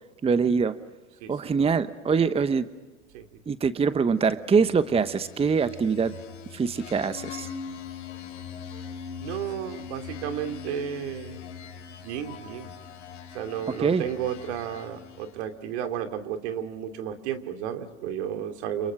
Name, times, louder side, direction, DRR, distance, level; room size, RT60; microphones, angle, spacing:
voice 1, 0.2-0.8 1.3-2.7 3.5-6.2 6.5-7.5 13.7-14.0, right 5 dB, 15° right, 13 dB, 0.9 m, -24 dB
sound 1, 4.6-15.5, left 7 dB, 80° left, 4.3 m, -41 dB
voice 2, 9.2-11.4 12.0-12.7 13.3-18.9, right 9 dB, 65° right, 6 dB, 2.7 m, -33 dB
29.5 x 28.5 x 6.4 m, 1.2 s
hypercardioid pair, 85°, 35 cm